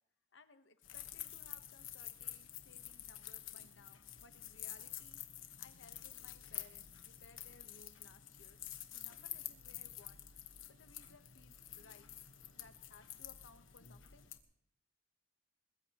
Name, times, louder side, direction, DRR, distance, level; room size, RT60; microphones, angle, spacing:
voice 1, 0.3-5.2 5.6-8.6 8.9-10.2 10.7-12.1 12.6-14.3, left 3 dB, 70° left, 10 dB, 1.0 m, -62 dB
sound 1, 0.8-14.4, left 12 dB, 90° left, 1.2 m, -49 dB
21.5 x 21.0 x 2.9 m, 0.71 s
head